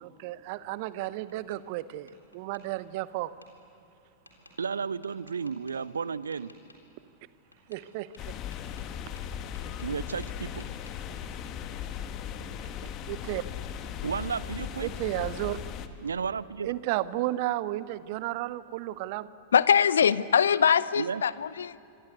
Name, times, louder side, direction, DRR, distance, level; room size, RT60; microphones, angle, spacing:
voice 1, 0.0-3.3 7.7-8.3 13.1-13.4 14.8-15.6 16.6-19.3, right 16 dB, 50° right, 17 dB, 0.9 m, -33 dB
Tap, 0.6-1.6 2.1-2.6 3.4-3.5 4.3-4.6 5.0-5.8 6.3-6.8 7.5-7.9 8.1-10.0 10.2-11.0, left 1 dB, 85° left, 3.6 m, -56 dB
voice 2, 4.6-6.5 9.8-10.6 14.0-14.9 16.0-16.7 21.0-21.2, right 6 dB, 70° right, 19 dB, 0.6 m, -33 dB
sound 1, 8.2-15.9, left 9 dB, 35° left, 1.6 m, -38 dB
voice 3, 19.5-21.8, left 7 dB, 65° left, 19 dB, 0.6 m, -22 dB
26.5 x 25.5 x 8.2 m, 2.8 s
figure-of-eight pair, 90°, 0 cm